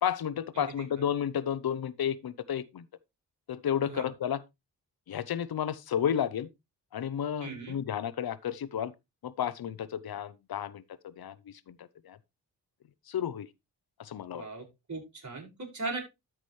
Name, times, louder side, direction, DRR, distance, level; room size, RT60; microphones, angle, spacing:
voice 1, 0.0-2.9 3.5-4.4 5.1-6.5 6.9-8.9 9.2-12.2 13.1-13.5 14.0-14.4, left 9 dB, 60° left, 0.8 m, -32 dB
voice 2, 7.4-7.8 14.3-16.0, right 3 dB, 45° right, 5.8 m, -38 dB
13.0 x 6.0 x 3.2 m
cardioid pair, 75°, 41 cm